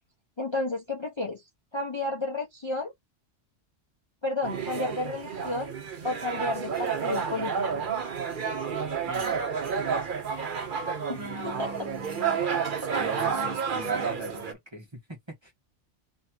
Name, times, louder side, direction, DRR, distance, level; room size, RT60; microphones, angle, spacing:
voice 1, 0.4-1.4 1.7-2.9 4.2-5.7 6.0-7.8 9.2-9.3 11.1-11.7, left 2 dB, 25° left, 0.8 m, -32 dB
sound 1, 4.4-14.5, right 6 dB, 50° right, 1.0 m, -30 dB
voice 2, 11.1-12.4 13.0-15.5, left 1 dB, 25° right, 1.3 m, -42 dB
3.1 x 3.0 x 4.4 m
omnidirectional pair, 1.2 m